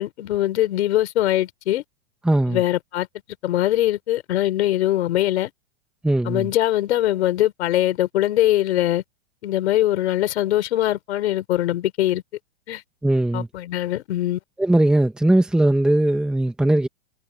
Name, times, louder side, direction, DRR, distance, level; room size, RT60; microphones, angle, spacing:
voice 1, 0.0-1.8 2.5-3.1 3.4-5.5 6.2-9.0 9.4-12.2 12.7-12.8 13.3-14.4, left 14 dB, 65° left, 5.1 m, -22 dB
voice 2, 2.2-2.6 6.0-6.5 13.0-13.5 14.6-16.9, right 1 dB, ahead, 1.6 m, -19 dB
supercardioid pair, 155°, 36 cm